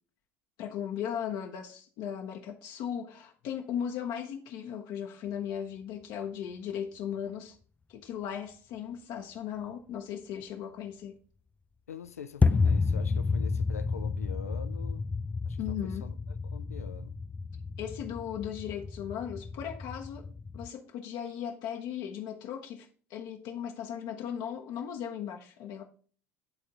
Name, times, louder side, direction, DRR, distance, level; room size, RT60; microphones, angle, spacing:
voice 1, 0.6-7.6 7.9-11.2 15.6-16.1 17.8-20.3 20.5-25.8, left 9 dB, 60° left, 0.8 m, -37 dB
voice 2, 11.9-15.1 15.4-16.1 16.5-17.2, left 8 dB, 90° left, 0.4 m, -44 dB
sound 1, 12.4-20.7, left 4 dB, 15° left, 0.3 m, -31 dB
10.5 x 3.6 x 2.9 m
hypercardioid pair, 65°, 8 cm